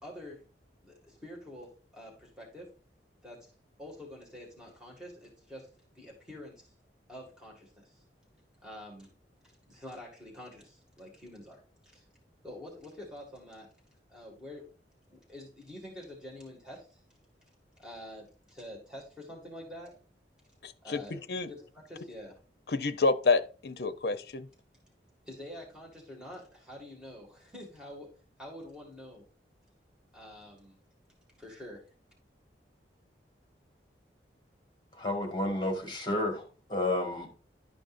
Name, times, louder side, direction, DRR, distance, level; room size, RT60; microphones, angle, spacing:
voice 1, 0.0-0.4 0.8-2.7 3.2-3.5 3.8-5.7 6.0-6.7 7.1-8.0 8.6-9.1 9.7-11.6 11.9-12.0 12.4-13.7 14.1-14.7 15.1-17.0 17.8-20.0 20.8-22.4 25.3-28.1 28.4-29.2 30.1-30.8 31.4-31.8, left 1 dB, 5° right, 1.9 m, -47 dB
voice 2, 20.6-21.0 21.3-21.5 22.7-24.5, left 4 dB, 65° left, 0.6 m, -28 dB
voice 3, 34.9-36.4 36.7-37.3, left 1 dB, 25° left, 1.6 m, -31 dB
11.5 x 5.2 x 2.5 m
head